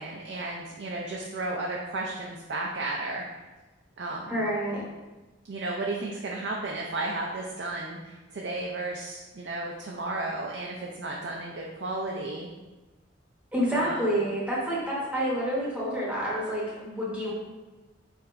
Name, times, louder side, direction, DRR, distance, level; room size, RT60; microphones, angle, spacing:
voice 1, 0.0-3.4 4.0-4.4 5.5-12.5 13.7-14.0, right 2 dB, 60° right, -1 dB, 0.4 m, -33 dB
voice 2, 4.3-4.8 13.5-17.3, equal, 5° right, -6 dB, 0.8 m, -28 dB
4.7 x 4.2 x 2.5 m, 1.2 s
head